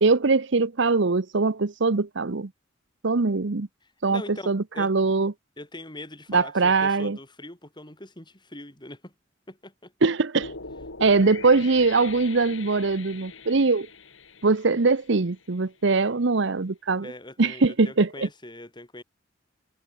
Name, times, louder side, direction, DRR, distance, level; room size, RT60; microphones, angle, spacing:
voice 1, 0.0-2.5 3.0-3.7 4.0-5.3 6.3-7.2 10.0-10.5 11.0-13.9 14.4-17.1 17.4-18.3, right 3 dB, 65° right, 0.9 m, -22 dB
voice 2, 3.8-4.9 5.6-9.1 9.5-9.9 11.0-11.4 17.0-19.0, left 2 dB, 25° left, 5.7 m, -42 dB
sound 1, 10.4-15.6, left 4 dB, 85° left, 4.7 m, -42 dB
head